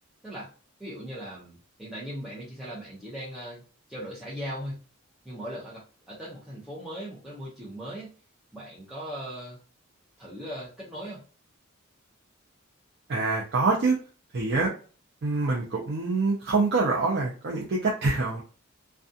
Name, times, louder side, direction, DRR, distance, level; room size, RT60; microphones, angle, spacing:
voice 1, 0.8-3.6 3.9-4.8 5.2-8.1 8.5-9.6 10.2-11.2, equal, ahead, -10 dB, 0.6 m, -39 dB
voice 2, 13.1-14.0 14.3-14.7 15.2-18.4, right 3 dB, 55° right, -3 dB, 0.5 m, -25 dB
2.3 x 2.3 x 2.6 m, 0.38 s
head